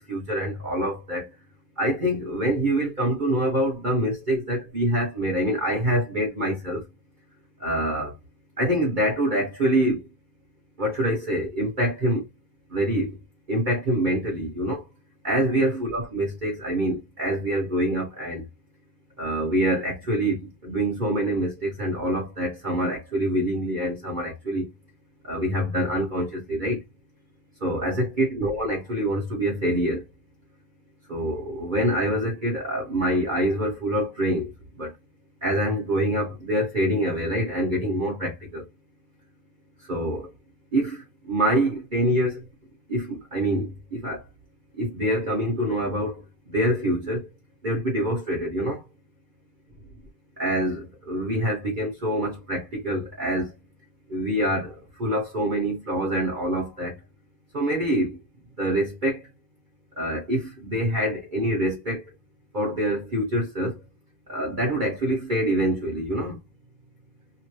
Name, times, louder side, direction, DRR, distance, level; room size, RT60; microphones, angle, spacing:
voice 1, 0.1-1.2 1.8-6.8 7.6-8.1 8.6-10.0 10.8-12.2 12.7-13.1 13.5-14.8 15.2-18.4 19.2-24.6 25.3-26.8 27.6-30.0 31.1-34.5 34.8-34.9 35.4-38.6 39.9-40.2 40.7-41.0 41.3-42.4 42.9-44.2 44.8-46.2 46.5-47.2 47.6-48.8 50.4-50.8 51.1-53.5 54.1-54.7 55.0-56.9 57.5-58.1 58.6-59.2 60.0-62.0 62.5-63.7 64.3-66.4, right 1 dB, 35° right, 1.1 m, -25 dB
2.9 x 2.5 x 3.1 m
omnidirectional pair, 1.6 m